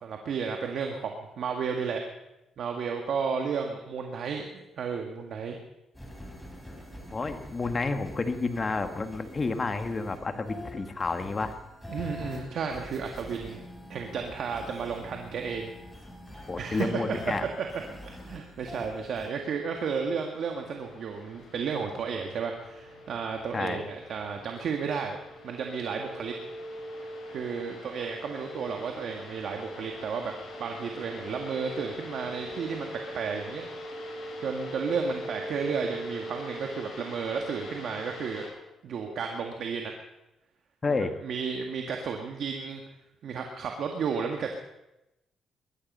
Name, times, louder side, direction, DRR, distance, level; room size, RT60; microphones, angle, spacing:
voice 1, 0.0-2.0 2.6-5.6 11.9-15.7 16.6-17.7 18.0-25.2 25.4-26.3 27.3-30.3 30.6-33.7 34.4-38.5 38.8-39.9 41.2-42.8 43.2-44.6, right 6 dB, 65° right, 3 dB, 1.8 m, -33 dB
sound 1, 5.9-19.3, equal, 5° left, 4.7 m, -45 dB
voice 2, 7.1-11.6 16.5-17.5 23.5-23.8 40.8-41.1, left 3 dB, 30° left, 7 dB, 1.7 m, -30 dB
sound 2, 19.5-38.5, equal, 50° left, 6.9 m, -42 dB
21.0 x 12.5 x 5.5 m, 0.94 s
cardioid pair, 90°, 0 cm